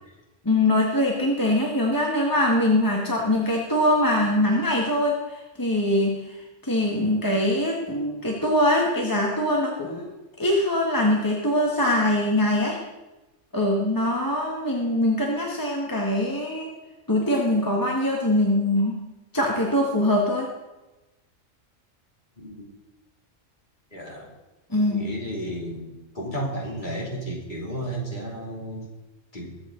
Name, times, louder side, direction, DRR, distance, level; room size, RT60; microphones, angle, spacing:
voice 1, 0.4-10.1 10.4-12.8 13.5-16.7 17.1-19.0 19.3-20.5 24.7-25.1, left 1 dB, 15° left, -2 dB, 1.6 m, -23 dB
voice 2, 22.4-22.7 23.9-24.3 24.8-25.9 26.1-28.9 29.3-29.6, right 1 dB, 35° left, -2 dB, 3.2 m, -33 dB
22.0 x 8.3 x 3.9 m, 1.0 s
omnidirectional pair, 1.4 m